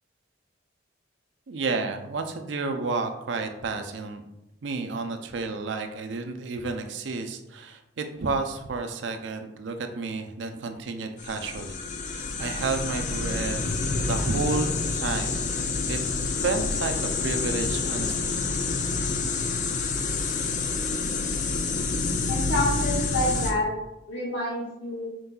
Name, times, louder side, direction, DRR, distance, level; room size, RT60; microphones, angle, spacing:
voice 1, 1.5-4.2 4.6-11.8 12.0-13.6 14.0-16.0 16.4-18.4 19.5-19.6, right 3 dB, 70° right, 6 dB, 0.5 m, -31 dB
sound 1, 11.2-23.5, left 4 dB, 40° left, 0.4 m, -28 dB
voice 2, 22.3-23.7 24.1-25.1, left 1 dB, 80° left, -5 dB, 1.4 m, -28 dB
4.5 x 3.9 x 2.3 m, 0.89 s
head